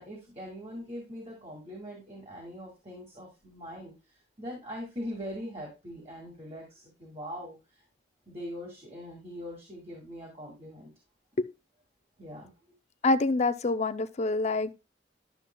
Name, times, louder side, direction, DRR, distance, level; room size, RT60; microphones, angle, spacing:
voice 1, 0.0-7.8 8.3-10.9 12.2-12.6, equal, 35° right, 2.2 m, -42 dB
voice 2, 13.0-14.7, left 3 dB, 40° left, 0.5 m, -26 dB
11.5 x 7.3 x 2.2 m
head